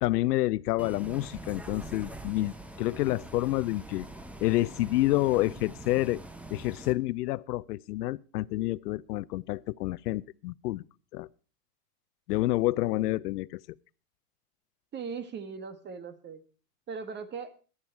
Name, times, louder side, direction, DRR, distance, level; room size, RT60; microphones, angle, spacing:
voice 1, 0.0-4.1 4.4-6.2 6.5-10.8 11.1-11.3 12.3-13.6, left 17 dB, 75° left, 0.7 m, -28 dB
Bus, 0.8-6.9, right 1 dB, 5° right, 0.9 m, -44 dB
voice 2, 14.9-16.4 16.9-17.5, right 5 dB, 20° right, 1.3 m, -39 dB
18.0 x 11.5 x 4.6 m
hypercardioid pair, 125°, 47 cm